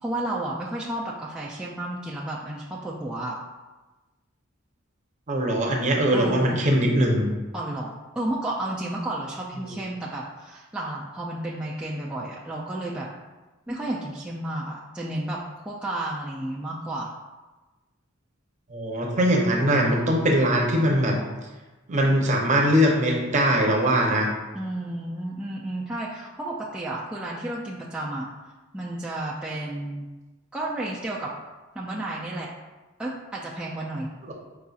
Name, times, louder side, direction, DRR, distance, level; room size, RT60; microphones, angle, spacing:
voice 1, 0.0-3.4 6.1-6.7 7.5-13.1 13.7-17.1 24.5-28.3 28.7-30.0 30.5-31.4 31.8-32.5 33.0-34.1, right 1 dB, 5° right, -6 dB, 0.3 m, -32 dB
voice 2, 5.3-7.3 9.7-9.8 18.7-21.2 21.9-24.3 34.2-34.3, equal, 35° right, 0 dB, 0.7 m, -21 dB
4.7 x 3.9 x 2.4 m, 1.2 s
head